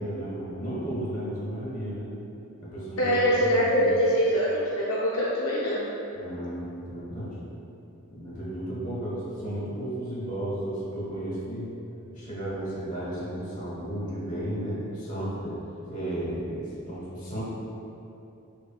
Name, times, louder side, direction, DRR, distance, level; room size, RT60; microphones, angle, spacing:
voice 1, 0.0-2.1 2.6-3.9 6.1-7.4 8.1-11.7 12.1-17.4, right 1 dB, 35° left, -7 dB, 1.0 m, -34 dB
voice 2, 3.0-5.9, equal, 65° left, -7 dB, 0.5 m, -23 dB
6.0 x 2.2 x 2.3 m, 2.8 s
head